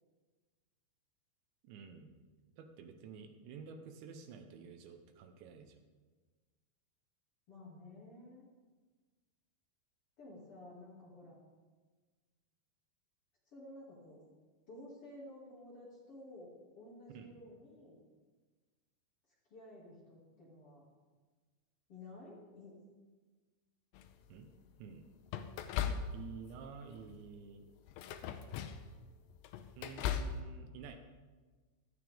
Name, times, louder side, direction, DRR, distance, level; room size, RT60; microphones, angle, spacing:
voice 1, 1.6-2.2 2.6-5.8 17.1-17.3 24.3-24.5 24.8-25.0 25.8-27.7 29.8-31.0, right 6 dB, 80° right, 6 dB, 3.2 m, -50 dB
voice 2, 7.5-8.5 10.2-11.4 13.5-14.2 14.7-18.0 19.5-20.8 21.9-22.8, left 1 dB, 40° left, -5 dB, 2.7 m, -53 dB
sound 1, 23.9-24.4 25.3-26.5 26.9-27.2 27.9-28.9 29.3-30.4, left 8 dB, 85° left, 2.7 m, -39 dB
16.5 x 13.0 x 3.6 m, 1.4 s
omnidirectional pair, 5.2 m